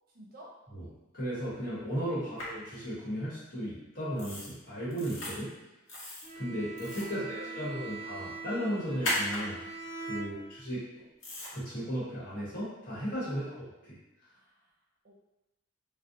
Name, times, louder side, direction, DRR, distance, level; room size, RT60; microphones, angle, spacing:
voice 1, 0.1-0.5 2.2-2.3 7.1-8.1 10.1-10.4 13.3-13.6 14.2-14.7 15.0-15.1, equal, 50° right, -4 dB, 0.6 m, -53 dB
voice 2, 1.1-5.5 6.4-9.6 10.1-10.8 11.5-13.4 13.9-14.0, equal, 45° left, -10 dB, 1.1 m, -35 dB
sound 1, 2.4-2.5 4.2-4.5 4.9-5.3 5.9-6.3 6.7-7.1 9.0-9.4 11.2-11.5, left 1 dB, 75° left, 0.8 m, -35 dB
Bowed string instrument, 6.2-10.8, right 3 dB, 25° left, 0.9 m, -43 dB
2.4 x 2.0 x 2.6 m, 1.0 s
head